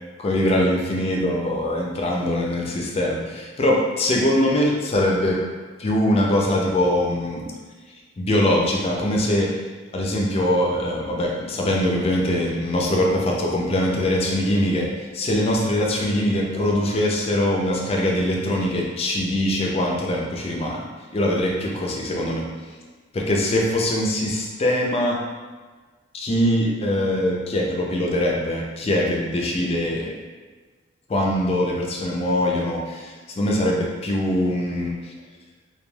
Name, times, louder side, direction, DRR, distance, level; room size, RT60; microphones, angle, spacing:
voice 1, 0.2-5.4 5.8-7.5 8.2-9.5 9.9-14.9 15.1-20.9 21.1-22.5 23.1-25.2 26.1-30.1 31.1-35.1, left 1 dB, 30° left, -1 dB, 0.4 m, -22 dB
3.1 x 2.2 x 2.2 m, 1.4 s
head